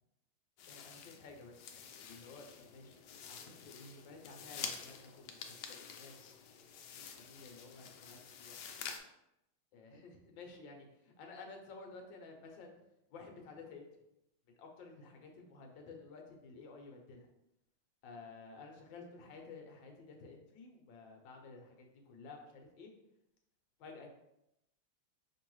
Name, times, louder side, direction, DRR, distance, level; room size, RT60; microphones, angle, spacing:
sound 1, 0.6-9.0, left 7 dB, 90° left, 0.9 m, -48 dB
voice 1, 0.7-6.4 7.1-8.7 9.7-12.7 13.1-13.9 14.5-17.3 18.0-22.9 23.8-24.1, left 3 dB, 70° left, 2 dB, 1.4 m, -53 dB
5.3 x 3.0 x 3.0 m, 0.84 s
omnidirectional pair, 2.3 m